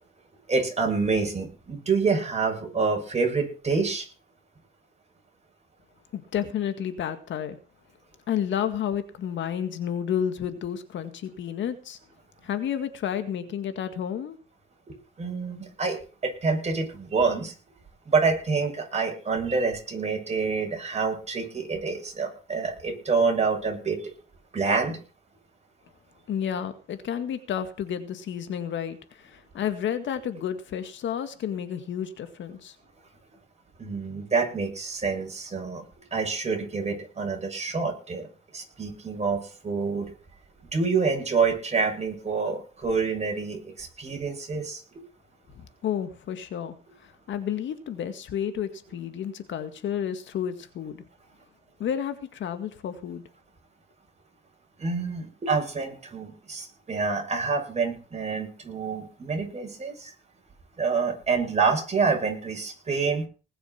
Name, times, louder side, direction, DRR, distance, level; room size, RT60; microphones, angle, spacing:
voice 1, 0.5-4.1 14.9-17.5 18.1-24.0 24.5-25.0 33.8-35.8 36.1-38.3 38.5-40.1 40.7-45.0 54.8-60.1 60.8-63.2, right 4 dB, 35° right, 7.0 m, -27 dB
voice 2, 6.1-7.6 8.3-12.0 12.4-14.4 26.3-29.0 29.2-32.7 45.6-46.7 47.3-51.0 51.8-53.2, left 9 dB, 70° left, 1.9 m, -31 dB
20.0 x 7.0 x 5.8 m
cardioid pair, 90°, 20 cm